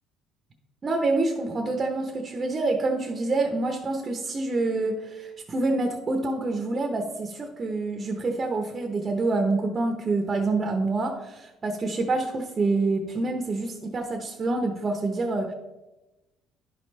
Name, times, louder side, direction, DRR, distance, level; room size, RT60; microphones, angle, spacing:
voice 1, 0.8-15.5, right 3 dB, 35° right, 3 dB, 0.9 m, -27 dB
11.0 x 5.3 x 3.3 m, 1.1 s
supercardioid pair, 90°, 0 cm